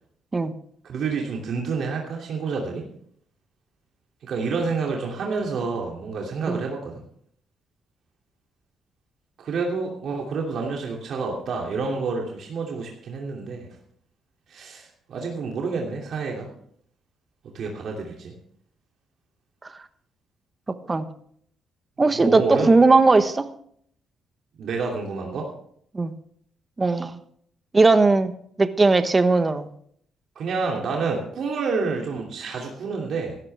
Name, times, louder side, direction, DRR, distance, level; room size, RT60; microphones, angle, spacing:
voice 1, 0.8-2.8 4.2-7.0 9.4-13.7 14.5-16.5 17.5-18.3 22.1-22.7 24.6-25.5 30.3-33.4, right 4 dB, 65° right, 0 dB, 2.8 m, -28 dB
voice 2, 22.0-23.5 25.9-26.1 26.8-27.2 27.7-28.3 28.6-29.7, right 3 dB, 25° right, 11 dB, 1.2 m, -18 dB
16.5 x 12.5 x 3.5 m, 0.64 s
cardioid pair, 90°, 0 cm